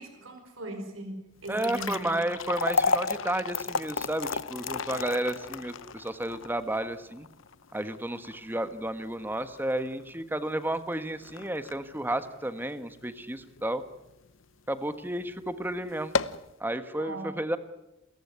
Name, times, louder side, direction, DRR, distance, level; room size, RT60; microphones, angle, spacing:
voice 1, 0.0-2.1 17.0-17.3, right 1 dB, 80° right, 5 dB, 5.0 m, -39 dB
sound 1, 1.4-13.7 14.1-14.2 14.9-15.1 15.4-15.5 15.9-16.5, left 4 dB, 75° left, 0.9 m, -33 dB
voice 2, 1.5-7.3 7.7-13.8 14.7-16.2 16.6-17.6, right 1 dB, 10° right, 11 dB, 1.3 m, -32 dB
28.5 x 14.5 x 9.5 m, 0.92 s
head